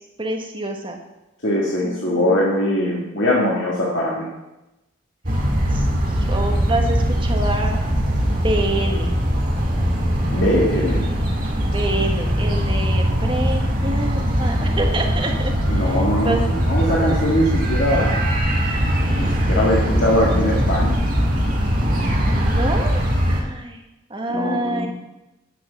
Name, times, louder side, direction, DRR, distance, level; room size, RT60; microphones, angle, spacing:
voice 1, 0.2-1.0 1.8-2.6 5.7-7.8 8.3-9.2 11.7-16.6 22.2-23.8 24.1-24.9, right 1 dB, 25° right, 3 dB, 1.3 m, -27 dB
voice 2, 1.4-4.3 10.3-11.0 15.7-16.3 16.6-18.3 19.2-21.0 24.3-24.9, left 1 dB, 60° left, -5 dB, 1.8 m, -21 dB
sound 1, 5.2-23.4, equal, 40° right, 2.0 m, -21 dB
10.0 x 6.4 x 7.3 m, 0.98 s
head